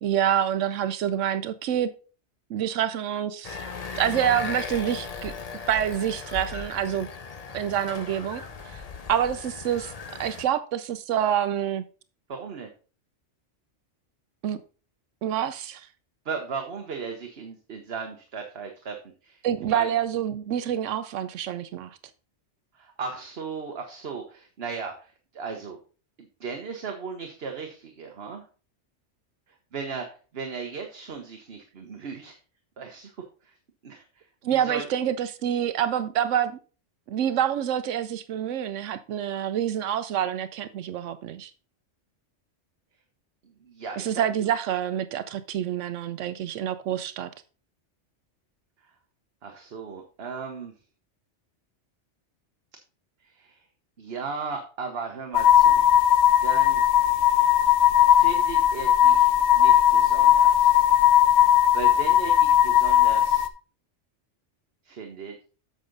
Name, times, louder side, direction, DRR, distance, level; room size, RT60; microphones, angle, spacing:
voice 1, 0.0-1.9 2.5-3.6 4.0-5.3 5.7-7.1 7.5-8.8 9.1-9.9 10.2-11.8 14.4-14.6 15.2-15.9 19.4-22.0 34.4-36.6 37.1-41.5 44.0-47.3, right 10 dB, 85° right, 1.0 m, -27 dB
sound 1, 3.4-10.4, left 5 dB, 35° left, 0.8 m, -37 dB
voice 2, 12.3-12.7 16.2-19.4 19.7-19.9 22.7-25.8 26.4-28.4 29.7-30.1 30.3-32.4 32.8-33.1 33.4-33.5 33.8-34.9 43.6-44.2 49.4-50.7 53.2-53.6 54.0-55.8 56.4-56.8 57.9-60.8 61.4-63.5 64.8-65.4, right 5 dB, 55° right, 1.3 m, -36 dB
sound 2, 55.3-63.5, left 11 dB, 65° left, 0.9 m, -18 dB
8.4 x 6.4 x 4.0 m
omnidirectional pair, 1.2 m